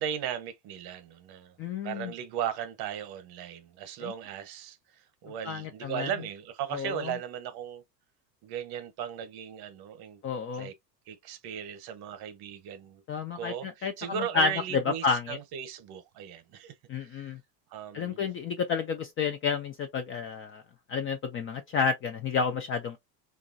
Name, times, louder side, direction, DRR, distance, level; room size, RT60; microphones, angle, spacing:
voice 1, 0.0-1.5 1.8-7.8 8.4-10.2 10.5-10.7 11.1-13.0 13.3-16.7 17.0-17.3 17.7-18.2, right 9 dB, 50° right, 0.9 m, -37 dB
voice 2, 1.6-2.1 4.0-4.1 5.4-6.1 6.7-7.1 10.2-10.7 13.1-15.4 16.9-17.4 17.9-20.6 20.9-23.0, left 5 dB, 30° left, 0.4 m, -30 dB
2.9 x 2.4 x 2.5 m
hypercardioid pair, 95°, 49 cm